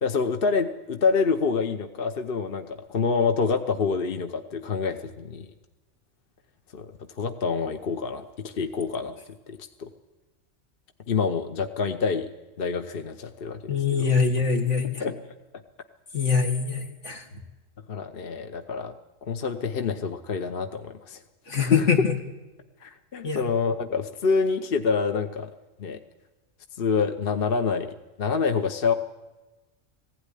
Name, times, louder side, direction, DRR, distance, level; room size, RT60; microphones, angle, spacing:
voice 1, 0.0-5.5 6.7-6.9 7.2-9.1 9.5-9.9 11.1-12.3 12.6-14.1 15.0-15.2 17.9-18.9 19.3-21.2 21.6-21.9 22.8-25.5 25.8-26.0 26.8-28.9, left 5 dB, 50° left, 7 dB, 1.1 m, -27 dB
voice 2, 13.7-15.0 16.1-17.2 21.5-22.2 23.2-23.4, left 5 dB, 75° left, 3 dB, 2.6 m, -24 dB
19.5 x 16.0 x 9.9 m, 1.2 s
omnidirectional pair, 1.2 m